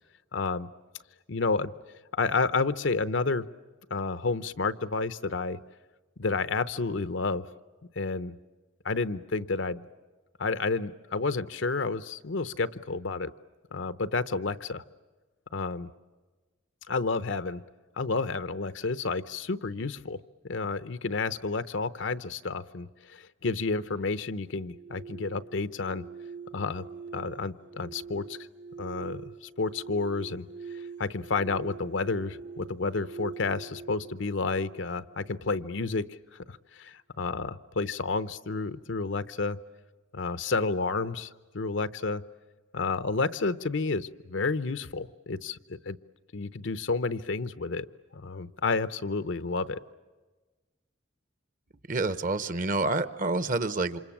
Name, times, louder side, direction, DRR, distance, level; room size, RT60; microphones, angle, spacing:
voice 1, 0.3-0.7 1.3-1.7 2.1-3.5 3.9-5.6 6.2-7.4 8.0-8.4 8.8-9.8 10.4-13.3 13.7-14.8 15.5-15.9 16.9-17.6 18.0-20.2 20.5-26.0 26.5-26.8 27.1-28.4 28.8-30.5 30.7-36.2 36.5-39.6 40.1-42.2 42.7-46.0 46.3-47.9 48.1-49.8, left 3 dB, 70° left, 14 dB, 0.8 m, -30 dB
sound 1, 24.5-35.6, right 5 dB, 60° right, 1.2 m, -44 dB
voice 2, 51.9-54.0, right 3 dB, 40° right, 14 dB, 0.9 m, -28 dB
28.0 x 26.5 x 7.3 m, 1.3 s
head